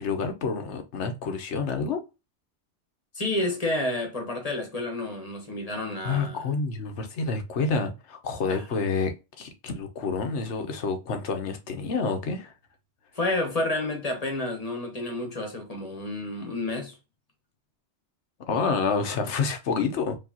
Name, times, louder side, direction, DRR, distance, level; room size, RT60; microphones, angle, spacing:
voice 1, 0.0-2.0 6.0-12.5 18.5-20.2, left 4 dB, 75° left, 1.1 m, -28 dB
voice 2, 3.1-6.5 8.5-8.8 13.1-17.0, left 2 dB, 35° left, 1.2 m, -30 dB
4.8 x 2.9 x 2.8 m
omnidirectional pair, 1.2 m